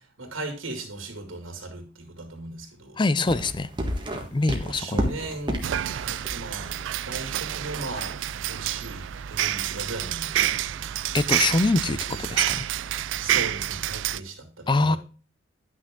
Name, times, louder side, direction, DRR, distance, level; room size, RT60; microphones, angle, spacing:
voice 1, 0.2-3.0 4.6-5.6 5.9-6.7 7.0-10.5 11.9-12.0 12.3-12.4 12.9-15.0, right 2 dB, 85° right, 2.5 m, -37 dB
voice 2, 3.0-3.7 4.3-5.1 11.1-12.7 14.7-15.0, left 3 dB, 25° left, 0.4 m, -24 dB
sound 1, 3.2-13.9, equal, 25° right, 1.4 m, -36 dB
sound 2, 5.6-14.2, right 12 dB, 70° right, 0.3 m, -28 dB
10.5 x 6.1 x 3.7 m
head